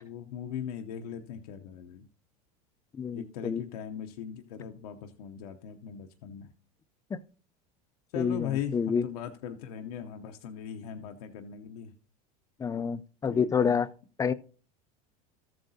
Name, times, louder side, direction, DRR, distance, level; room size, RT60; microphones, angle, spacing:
voice 1, 0.0-2.1 3.1-6.5 8.1-11.9 13.3-13.8, left 8 dB, 80° left, 0.8 m, -39 dB
voice 2, 3.0-3.6 8.2-9.0 12.6-13.9 14.2-14.3, left 6 dB, 15° left, 0.4 m, -28 dB
13.5 x 7.7 x 2.7 m
supercardioid pair, 105°, 19 cm